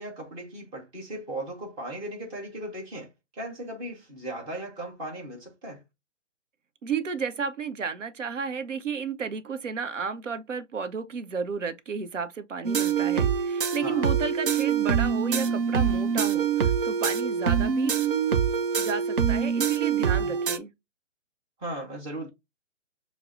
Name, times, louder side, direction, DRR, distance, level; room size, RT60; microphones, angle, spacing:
voice 1, 0.0-5.8 13.8-14.1 20.1-20.4 21.6-22.3, right 1 dB, 10° right, 1.0 m, -37 dB
voice 2, 6.8-18.0 18.8-20.7, right 5 dB, 85° right, 0.7 m, -32 dB
sound 1, 12.6-20.6, right 7 dB, 45° right, 0.6 m, -25 dB
5.9 x 2.0 x 2.5 m
figure-of-eight pair, 140°, 36 cm